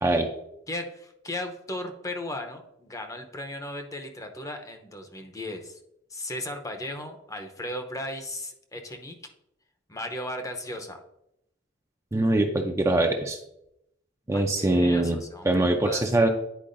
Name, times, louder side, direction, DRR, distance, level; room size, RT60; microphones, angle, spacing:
voice 1, 0.7-5.8 6.1-9.2 9.9-11.0 14.3-16.0, left 1 dB, 15° left, 5 dB, 0.7 m, -36 dB
voice 2, 12.1-13.4 14.3-16.3, right 2 dB, 15° right, 3 dB, 0.5 m, -23 dB
10.0 x 4.6 x 2.6 m, 0.80 s
head